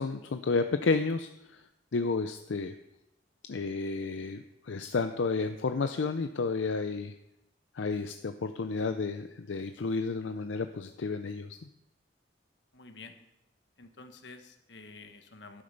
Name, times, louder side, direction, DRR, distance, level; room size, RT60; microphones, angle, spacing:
voice 1, 0.0-1.6 1.9-2.7 3.5-7.1 7.7-11.6, left 4 dB, 85° left, 9 dB, 0.5 m, -31 dB
voice 2, 12.7-13.1 13.8-15.6, left 3 dB, 70° left, 7 dB, 1.3 m, -49 dB
12.0 x 8.7 x 5.2 m, 0.87 s
head